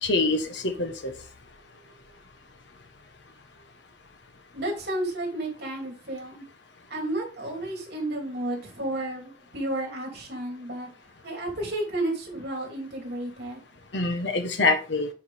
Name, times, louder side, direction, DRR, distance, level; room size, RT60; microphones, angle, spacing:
voice 1, 0.0-1.1 13.9-15.1, left 3 dB, 80° left, 6 dB, 1.1 m, -25 dB
voice 2, 4.5-6.4 6.9-10.9 11.2-13.6, right 1 dB, 65° right, -1 dB, 2.9 m, -32 dB
8.7 x 4.7 x 3.4 m, 0.34 s
head